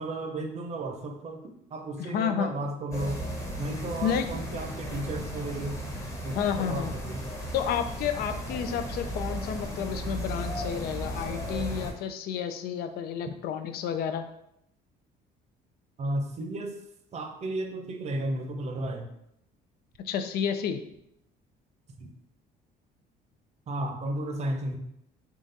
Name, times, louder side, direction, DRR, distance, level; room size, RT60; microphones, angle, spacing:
voice 1, 0.0-3.2 3.6-5.8 6.2-7.3 16.0-16.8 17.1-19.1 22.0-22.1 23.7-24.8, right 1 dB, 40° right, 4 dB, 0.7 m, -33 dB
voice 2, 2.0-2.5 4.0-4.3 6.3-6.9 7.5-14.3 20.1-20.8, left 8 dB, 65° left, 8 dB, 0.4 m, -30 dB
sound 1, 2.9-11.9, equal, 15° left, 0.9 m, -35 dB
3.7 x 2.4 x 3.9 m, 0.76 s
cardioid pair, 110°, 17 cm